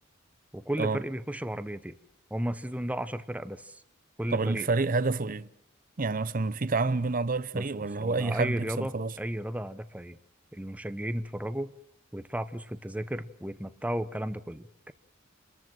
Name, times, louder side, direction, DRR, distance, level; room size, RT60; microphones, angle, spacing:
voice 1, 0.5-1.9 2.3-3.7 4.2-4.7 7.5-7.7 8.0-10.2 10.5-11.7 12.1-14.9, right 1 dB, 5° right, 0.9 m, -34 dB
voice 2, 4.3-5.5 6.0-9.1, right 3 dB, 45° right, 0.8 m, -28 dB
29.0 x 14.0 x 7.8 m
head